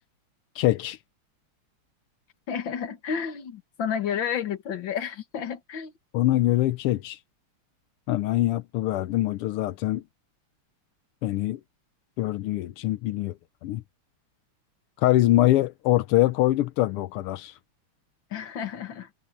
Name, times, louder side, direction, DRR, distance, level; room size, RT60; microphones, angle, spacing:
voice 1, 0.5-1.0 6.1-7.2 8.1-10.0 11.2-11.6 12.2-13.8 15.0-17.6, left 15 dB, 85° left, 1.7 m, -24 dB
voice 2, 2.5-5.9 18.3-19.1, left 7 dB, 60° left, 2.2 m, -31 dB
omnidirectional pair, 2.4 m